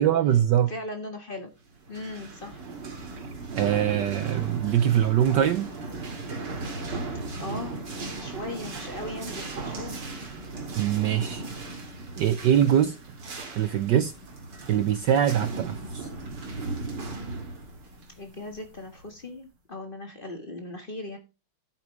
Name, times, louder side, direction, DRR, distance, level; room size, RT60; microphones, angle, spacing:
voice 1, 0.0-0.7 3.5-5.7 10.7-11.4 12.2-13.0 13.6-14.1 14.7-16.1, right 10 dB, 70° right, 1.1 m, -23 dB
voice 2, 0.7-1.5 1.9-2.6 7.4-7.8 8.2-10.0 18.2-21.2, left 1 dB, 25° left, 1.5 m, -38 dB
sound 1, 1.8-19.2, right 3 dB, 50° right, 2.9 m, -37 dB
11.0 x 8.8 x 3.2 m
omnidirectional pair, 2.4 m